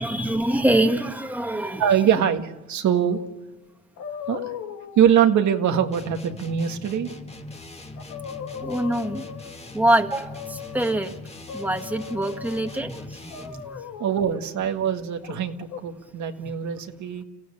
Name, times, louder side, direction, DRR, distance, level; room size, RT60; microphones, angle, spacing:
voice 1, 0.0-1.8 8.6-9.2 9.7-11.1 11.5-13.8, right 1 dB, 5° right, 5 dB, 1.8 m, -24 dB
voice 2, 1.8-3.2 4.3-4.4 5.0-7.1 14.0-17.2, right 9 dB, 70° right, 5 dB, 1.9 m, -22 dB
sound 1, 4.0-5.1 7.5-7.6 8.0-9.7 10.2-11.0 11.5-12.8 13.3-14.4 15.2-15.8, left 7 dB, 80° left, 2.1 m, -37 dB
sound 2, 5.9-13.7, left 2 dB, 20° left, 2.4 m, -41 dB
29.5 x 15.5 x 8.6 m, 1.1 s
cardioid pair, 90°, 30 cm